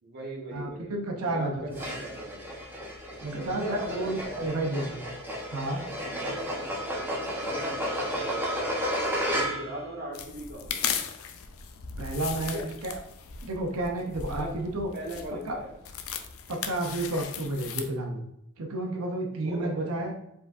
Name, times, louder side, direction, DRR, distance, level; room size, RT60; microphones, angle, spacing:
voice 1, 0.0-2.5 3.2-4.7 6.0-8.8 9.3-10.9 12.4-12.7 14.3-14.5 14.9-15.8 19.3-19.9, right 1 dB, 50° right, -1 dB, 1.2 m, -39 dB
voice 2, 0.5-1.8 3.2-5.0 5.5-5.8 12.0-13.0 13.4-14.9 15.5-15.6 16.5-18.2 18.6-20.1, right 2 dB, 80° right, 2 dB, 0.7 m, -31 dB
sound 1, 1.7-9.8, equal, 10° right, 1.0 m, -32 dB
sound 2, 10.1-17.9, left 7 dB, 70° left, 0.5 m, -37 dB
4.8 x 3.7 x 2.5 m, 0.79 s
head